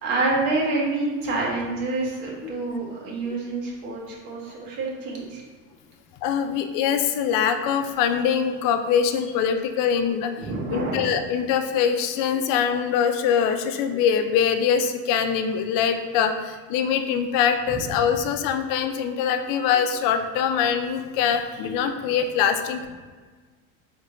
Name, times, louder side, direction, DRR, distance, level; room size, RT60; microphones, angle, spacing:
voice 1, 0.0-5.4 10.4-11.0, right 3 dB, 70° right, -3 dB, 1.3 m, -27 dB
voice 2, 2.4-2.8 3.2-3.4 6.2-22.9, left 7 dB, 55° left, 7 dB, 0.5 m, -23 dB
4.1 x 3.3 x 3.0 m, 1.4 s
supercardioid pair, 110°, 39 cm